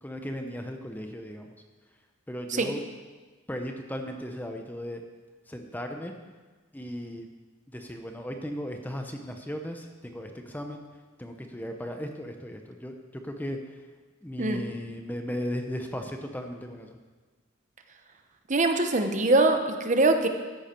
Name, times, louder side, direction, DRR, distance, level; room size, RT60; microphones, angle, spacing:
voice 1, 0.0-1.5 2.3-2.8 3.5-5.0 5.5-6.1 6.7-7.3 7.7-10.8 11.2-12.9 13.2-13.8 14.2-17.0, equal, 10° left, 4 dB, 0.8 m, -36 dB
voice 2, 18.5-19.6 19.8-20.3, right 2 dB, 35° right, 6 dB, 0.9 m, -22 dB
14.0 x 10.5 x 4.5 m, 1.3 s
head